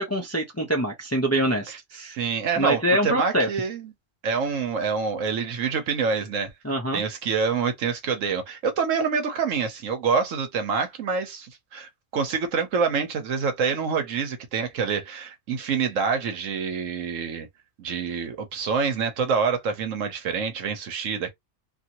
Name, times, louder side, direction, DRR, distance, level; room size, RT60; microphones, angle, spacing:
voice 1, 0.0-2.2 2.6-3.5 6.6-7.0, right 1 dB, 20° left, 0.5 m, -24 dB
voice 2, 1.7-3.9 4.2-6.5 6.9-17.5 17.8-21.3, right 5 dB, 75° right, 1.2 m, -26 dB
2.8 x 2.6 x 2.9 m
omnidirectional pair, 1.3 m